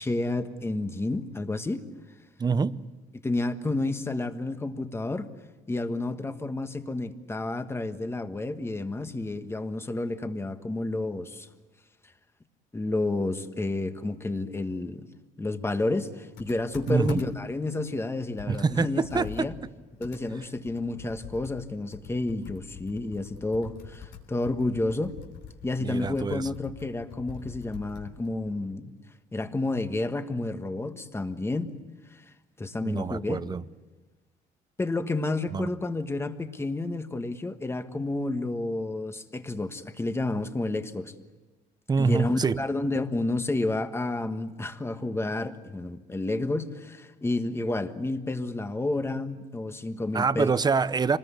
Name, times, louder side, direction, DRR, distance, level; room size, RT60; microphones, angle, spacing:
voice 1, 0.0-1.9 3.2-5.3 5.7-11.5 12.7-15.1 15.4-19.5 20.0-25.2 25.6-28.9 29.3-31.8 32.6-33.4 34.8-41.1 42.0-50.5, left 2 dB, 15° left, 8 dB, 1.5 m, -30 dB
voice 2, 2.4-2.8 16.9-17.2 18.5-19.5 25.8-26.5 32.8-33.6 35.5-35.7 41.9-42.6 50.1-51.2, right 5 dB, 25° right, 16 dB, 0.7 m, -26 dB
Computer keyboard, 16.4-17.5 18.0-18.1 18.4-21.7 21.9-28.4, left 6 dB, 80° left, 3.4 m, -44 dB
26.0 x 20.0 x 8.4 m, 1.2 s
cardioid pair, 110°, 17 cm